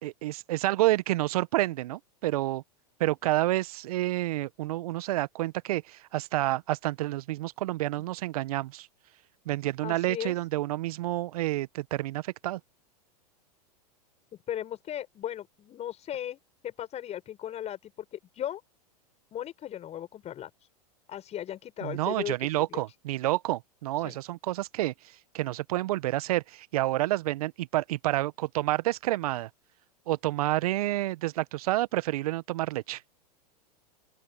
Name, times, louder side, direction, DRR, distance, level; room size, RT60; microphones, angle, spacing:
voice 1, 0.0-2.6 3.0-8.9 9.4-12.6 21.8-24.9 25.3-29.5 30.1-33.0, right 16 dB, 60° right, 1.3 m, -29 dB
voice 2, 9.8-10.4 14.5-16.4 16.6-18.6 19.3-20.7 21.1-22.8 24.0-24.2, left 11 dB, 30° left, 7.8 m, -37 dB
open air
hypercardioid pair, 100°, 21 cm